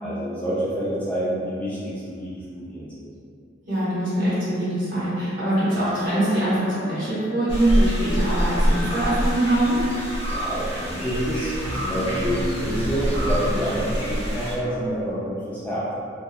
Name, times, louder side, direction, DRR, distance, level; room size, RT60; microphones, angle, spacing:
voice 1, 0.0-3.1 10.2-15.9, equal, 10° left, -10 dB, 0.3 m, -28 dB
voice 2, 3.6-9.8, right 1 dB, 50° right, -11 dB, 1.1 m, -23 dB
sound 1, 5.5-14.9, left 1 dB, 80° left, 0.5 m, -38 dB
sound 2, 7.5-14.5, equal, 30° left, 0.7 m, -26 dB
sound 3, 11.6-14.3, right 1 dB, 80° right, 0.4 m, -34 dB
2.8 x 2.2 x 2.2 m, 2.4 s
head